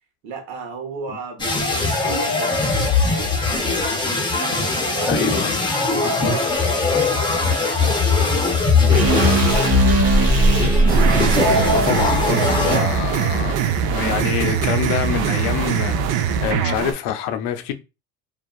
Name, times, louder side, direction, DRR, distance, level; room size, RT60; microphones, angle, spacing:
voice 1, 0.2-3.8 4.5-5.4 5.9-7.2 7.4-8.5 9.0-9.5 9.7-10.7 11.6-13.1, right 4 dB, 75° right, 1.1 m, -34 dB
sound 1, 1.4-12.8, left 3 dB, 10° left, 0.7 m, -19 dB
voice 2, 5.1-5.6 11.7-17.7, left 10 dB, 60° left, 0.6 m, -26 dB
sound 2, 8.9-13.1, right 3 dB, 35° right, 1.0 m, -23 dB
sound 3, 10.9-16.9, right 8 dB, 55° right, 0.5 m, -22 dB
2.6 x 2.3 x 2.3 m
supercardioid pair, 90°, 46 cm